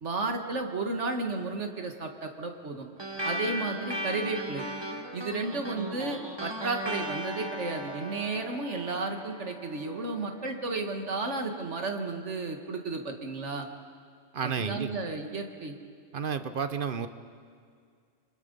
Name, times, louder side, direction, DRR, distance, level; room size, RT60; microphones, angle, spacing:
voice 1, 0.0-2.9 3.2-4.7 5.1-13.7 14.4-15.8, right 3 dB, 85° right, 4 dB, 2.1 m, -33 dB
sound 1, 3.0-11.8, right 1 dB, 20° right, 1.6 m, -38 dB
voice 2, 14.3-15.0 16.1-17.1, right 6 dB, 50° right, 10 dB, 1.0 m, -31 dB
29.0 x 23.5 x 5.5 m, 2.2 s
omnidirectional pair, 1.2 m